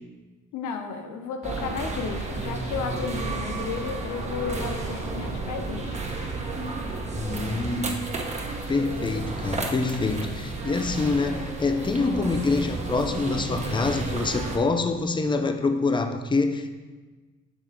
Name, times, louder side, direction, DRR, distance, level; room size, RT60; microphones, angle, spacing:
voice 1, 0.5-6.0, left 6 dB, 85° left, 5 dB, 0.8 m, -33 dB
sound 1, 1.4-14.6, right 3 dB, 25° right, 0.9 m, -32 dB
voice 2, 7.1-8.1 8.7-16.7, left 3 dB, 15° left, 7 dB, 0.4 m, -26 dB
6.8 x 3.5 x 4.3 m, 1.3 s
cardioid pair, 90°, 30 cm